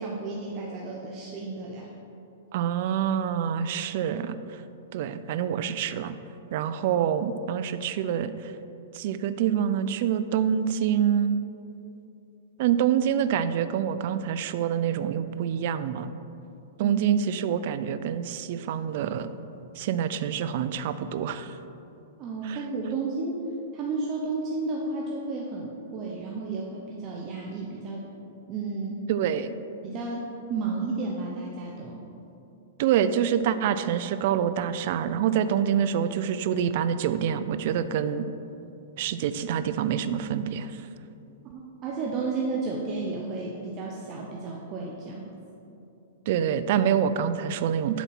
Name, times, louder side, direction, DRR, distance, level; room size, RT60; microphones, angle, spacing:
voice 1, 0.0-1.9 16.8-17.0 22.2-23.4 23.7-28.0 28.5-29.0 29.8-32.0 41.4-45.3, right 3 dB, 35° right, -2 dB, 0.8 m, -32 dB
voice 2, 2.5-4.4 4.9-6.2 6.5-8.5 8.9-11.4 12.6-16.1 16.8-19.3 19.8-21.6 22.5-22.6 29.1-29.6 32.8-38.3 39.0-40.8 46.3-48.0, right 9 dB, 55° right, 12 dB, 0.4 m, -26 dB
7.0 x 4.2 x 6.0 m, 2.9 s
hypercardioid pair, 125°, 0 cm